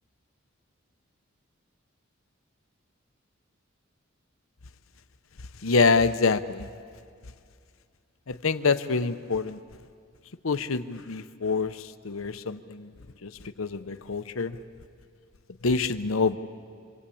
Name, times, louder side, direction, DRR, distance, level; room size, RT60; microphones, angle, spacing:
voice 1, 5.6-6.7 8.3-9.6 10.4-12.9 13.2-14.6 15.6-16.4, left 4 dB, 80° left, 11 dB, 0.9 m, -26 dB
26.5 x 25.5 x 8.6 m, 2.3 s
head